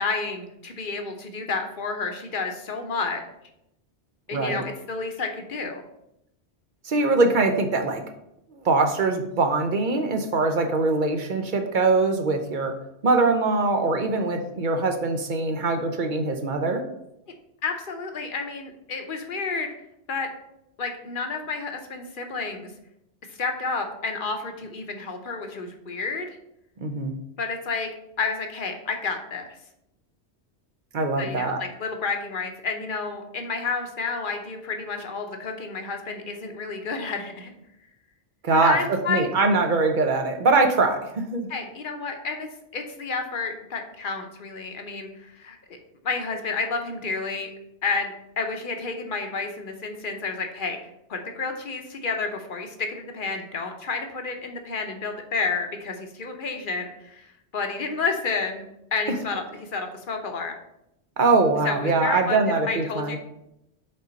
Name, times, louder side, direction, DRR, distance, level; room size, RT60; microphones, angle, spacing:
voice 1, 0.0-3.2 4.3-5.8 17.6-19.7 20.1-20.3 20.8-22.7 23.3-26.3 27.4-27.9 28.2-29.5 31.2-37.5 38.5-39.3 41.5-42.5 42.7-45.8 46.0-47.5 47.8-50.8 51.1-58.6 58.9-60.6 61.6-63.2, left 4 dB, 50° left, 5 dB, 0.9 m, -30 dB
voice 2, 4.3-4.6 6.8-8.0 8.6-12.7 13.0-16.8 26.8-27.1 30.9-31.6 38.4-41.5 61.2-63.2, right 3 dB, 50° right, 5 dB, 0.8 m, -22 dB
5.5 x 3.9 x 5.2 m, 0.82 s
omnidirectional pair, 1.2 m